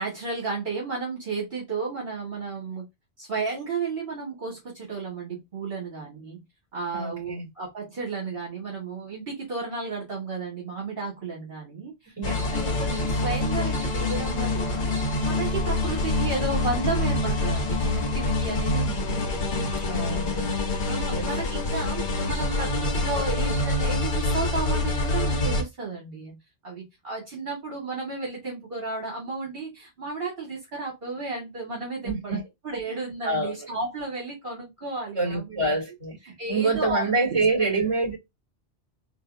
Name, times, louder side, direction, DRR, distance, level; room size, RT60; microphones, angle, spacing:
voice 1, 0.0-2.9 3.2-6.4 6.7-12.1 12.5-14.9 15.2-20.4 20.9-26.4 26.6-32.4 32.6-35.8 36.4-37.7, right 3 dB, 60° right, 1.7 m, -33 dB
voice 2, 6.9-7.5 12.2-12.8 19.9-20.5 21.1-21.3 32.0-32.4 32.9-33.0 33.2-33.7 35.1-38.2, right 3 dB, 25° right, 2.6 m, -27 dB
sound 1, 12.2-25.6, left 2 dB, 50° left, 1.0 m, -26 dB
3.8 x 2.7 x 2.6 m
omnidirectional pair, 1.1 m